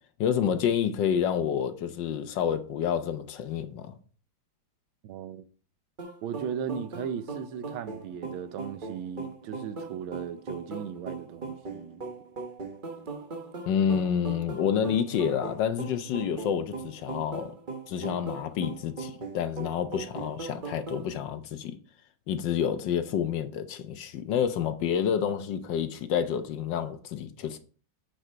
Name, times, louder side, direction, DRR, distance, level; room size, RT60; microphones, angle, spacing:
voice 1, 0.2-4.0 13.7-17.5 17.9-21.7 22.3-27.6, left 8 dB, 70° left, 1.3 m, -28 dB
voice 2, 5.0-5.4 6.2-12.1, right 8 dB, 85° right, 1.5 m, -37 dB
sound 1, 6.0-21.1, right 4 dB, 35° right, 0.8 m, -39 dB
9.0 x 4.8 x 4.5 m
omnidirectional pair, 2.2 m